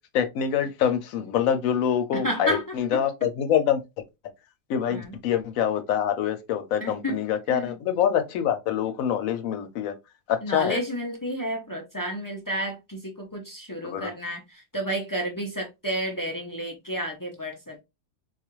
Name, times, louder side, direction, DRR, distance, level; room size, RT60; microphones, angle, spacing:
voice 1, 0.1-3.8 4.7-9.9 10.3-10.8 13.8-14.1, left 9 dB, 80° left, 1.1 m, -25 dB
voice 2, 2.1-3.0 4.9-5.2 6.8-7.2 7.5-7.7 10.4-17.8, right 1 dB, 30° left, 0.3 m, -31 dB
4.0 x 2.4 x 3.0 m
omnidirectional pair, 1.4 m